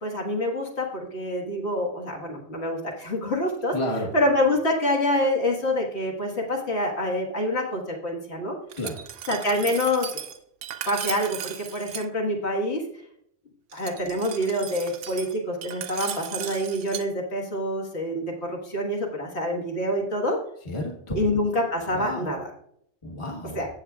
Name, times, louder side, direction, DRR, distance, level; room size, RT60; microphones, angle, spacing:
voice 1, 0.0-3.8 4.1-8.6 9.3-10.1 10.9-12.8 13.7-20.4 21.2-22.5 23.6-23.7, left 1 dB, 60° left, -1 dB, 1.9 m, -26 dB
voice 2, 3.7-4.1 8.8-9.0 20.6-21.3 21.9-22.3 23.0-23.6, left 1 dB, 25° left, 2 dB, 1.3 m, -31 dB
Glass, 8.7-12.1 13.7-17.1, right 10 dB, 80° right, 1.0 m, -36 dB
14.5 x 7.9 x 2.4 m, 0.71 s
omnidirectional pair, 1.3 m